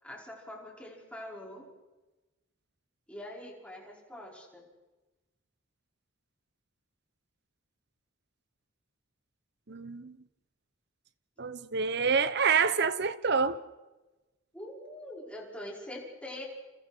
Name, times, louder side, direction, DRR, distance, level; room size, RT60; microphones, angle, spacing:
voice 1, 0.0-1.7 3.1-4.7 14.5-16.5, left 1 dB, 5° left, 5.5 m, -44 dB
voice 2, 9.7-10.2 11.4-13.6, right 5 dB, 50° right, 0.9 m, -27 dB
29.5 x 28.5 x 4.6 m
head